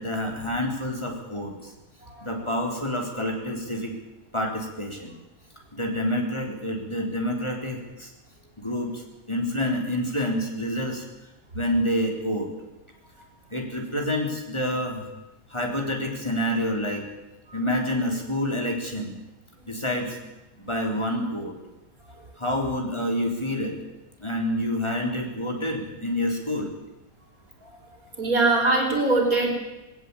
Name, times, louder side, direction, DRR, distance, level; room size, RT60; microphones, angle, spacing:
voice 1, 0.0-1.7 2.2-3.9 4.3-5.1 5.7-8.1 8.6-9.0 9.3-11.1 11.5-12.5 13.5-15.1 15.5-17.0 17.5-19.2 19.7-20.2 20.6-21.5 22.4-23.8 24.2-26.7, left 1 dB, 20° left, 1 dB, 3.9 m, -28 dB
voice 2, 28.2-29.5, right 2 dB, 75° right, 1 dB, 5.2 m, -22 dB
19.0 x 18.0 x 8.6 m, 1.0 s
omnidirectional pair, 1.5 m